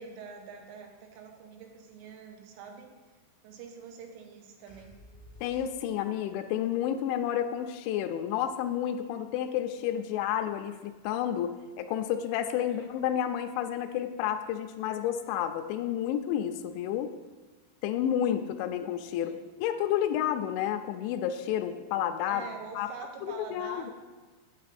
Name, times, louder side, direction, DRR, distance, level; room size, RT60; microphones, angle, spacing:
voice 1, 0.0-2.9 3.4-5.0 12.7-12.9 19.2-19.5 22.3-23.9, right 5 dB, 90° right, 3 dB, 3.6 m, -45 dB
sound 1, 4.7-6.2, left 1 dB, 70° left, 0.9 m, -53 dB
voice 2, 5.4-17.1 17.8-19.4 19.6-22.4 22.8-22.9 23.2-23.9, left 10 dB, 85° left, 5 dB, 2.7 m, -30 dB
8.8 x 8.5 x 4.1 m, 1.4 s
omnidirectional pair, 5.6 m